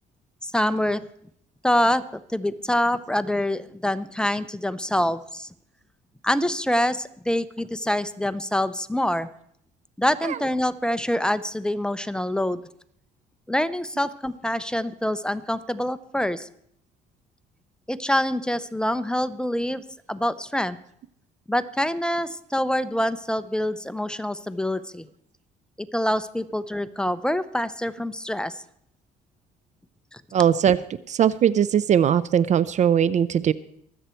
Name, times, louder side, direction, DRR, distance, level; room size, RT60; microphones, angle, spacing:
voice 1, 0.4-1.0 1.6-2.0 2.3-5.5 6.2-9.3 10.0-12.6 13.5-16.5 17.9-20.8 21.5-25.1 25.8-28.6 30.1-30.2, left 1 dB, 5° left, 13 dB, 0.6 m, -25 dB
voice 2, 30.3-30.8 31.1-33.5, right 9 dB, 45° right, 18 dB, 0.5 m, -20 dB
23.5 x 8.2 x 4.4 m, 0.68 s
cardioid pair, 110°, 17 cm